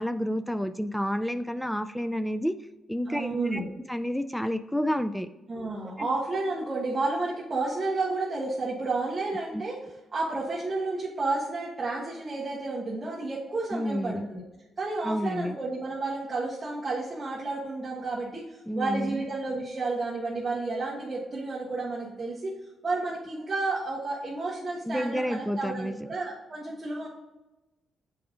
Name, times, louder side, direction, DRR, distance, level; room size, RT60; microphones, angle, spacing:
voice 1, 0.0-2.5 2.9-3.6 3.9-5.3 6.0-6.1 9.5-9.6 13.7-14.3 15.0-15.6 18.7-19.2 24.9-26.1, equal, 5° left, 11 dB, 0.3 m, -30 dB
voice 2, 3.1-3.7 5.5-9.8 10.1-14.4 14.8-22.5 22.8-27.1, right 3 dB, 25° right, -6 dB, 1.4 m, -31 dB
7.0 x 4.9 x 3.8 m, 1.0 s
cardioid pair, 100°, 0 cm